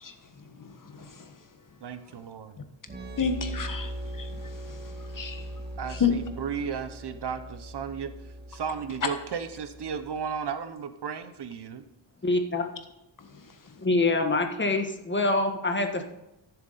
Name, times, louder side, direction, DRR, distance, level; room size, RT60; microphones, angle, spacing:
voice 1, 0.6-1.2 3.2-3.9 4.2-4.3 4.7-4.8 5.1-5.4 6.0-6.1 9.0-9.1, left 7 dB, 45° left, 7 dB, 1.4 m, -29 dB
voice 2, 1.8-2.6 5.8-11.8, right 7 dB, 65° right, 10 dB, 1.0 m, -34 dB
sound 1, 2.9-10.4, right 1 dB, 20° right, 1.5 m, -40 dB
voice 3, 12.2-12.6 13.8-16.0, left 2 dB, 25° left, 5 dB, 1.5 m, -25 dB
15.0 x 7.0 x 4.1 m, 0.91 s
cardioid pair, 90°, 44 cm